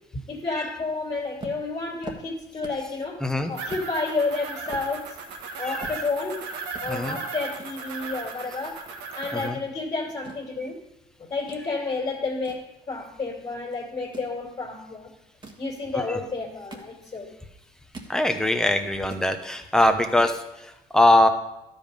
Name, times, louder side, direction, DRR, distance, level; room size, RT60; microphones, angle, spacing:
voice 1, 0.1-3.2 3.5-5.2 5.6-6.4 6.8-8.8 9.2-10.8 11.2-15.1 15.6-17.3, left 3 dB, 30° left, -3 dB, 2.4 m, -30 dB
sound 1, 1.4-3.0 3.3-3.4 3.7-3.9 4.4-6.4 6.7-6.9 7.6-8.8 9.0-9.4 10.0-11.7 12.1-13.4 14.0-14.4 15.2-15.7 16.3-17.3 17.6-18.2 18.6-18.7 18.9-19.3, right 2 dB, 25° right, 1.5 m, -44 dB
voice 2, 3.2-3.5 5.6-5.9 6.9-7.2 9.3-9.6 15.9-16.2 18.1-21.3, left 1 dB, 5° left, 6 dB, 0.9 m, -22 dB
sound 2, 3.5-9.5, right 4 dB, 80° right, 1.5 m, -36 dB
12.5 x 5.3 x 5.3 m, 0.93 s
cardioid pair, 110°, 17 cm